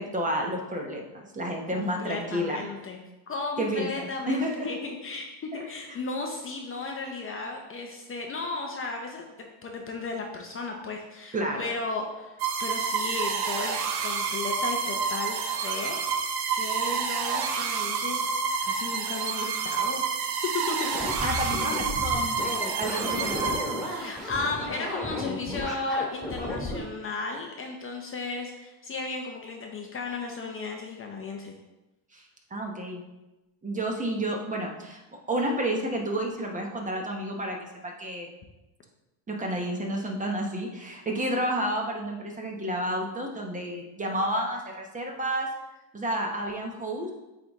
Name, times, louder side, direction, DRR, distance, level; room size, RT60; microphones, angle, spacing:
voice 1, 0.0-2.6 3.6-4.7 11.3-11.7 21.2-22.5 22.8-23.5 32.1-32.2 32.5-33.0 33.6-35.0 35.3-37.6 37.8-38.3 39.3-45.5 45.9-47.1, right 1 dB, 15° right, 1 dB, 0.9 m, -30 dB
voice 2, 1.7-3.0 3.3-5.3 5.7-9.3 9.6-18.3 18.6-20.0 20.5-21.2 23.9-31.5, left 3 dB, 25° left, 2 dB, 0.7 m, -35 dB
sound 1, 12.4-24.2, right 5 dB, 50° right, 0.9 m, -29 dB
sound 2, 20.9-26.8, left 1 dB, ahead, 1.9 m, -33 dB
8.2 x 3.5 x 3.5 m, 1.0 s
supercardioid pair, 120°, 48 cm